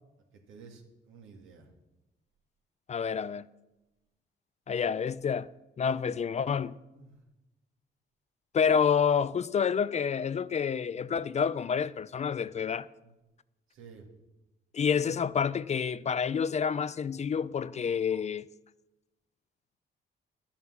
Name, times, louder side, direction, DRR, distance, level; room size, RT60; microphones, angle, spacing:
voice 1, 0.3-1.7 6.9-7.2 13.0-13.1 13.7-14.1, right 5 dB, 85° right, 2.2 m, -52 dB
voice 2, 2.9-3.5 4.7-5.5 5.8-6.8 8.5-12.9 14.7-18.5, left 7 dB, 35° left, 0.4 m, -28 dB
12.0 x 7.2 x 7.3 m
cardioid pair, 90°, 20 cm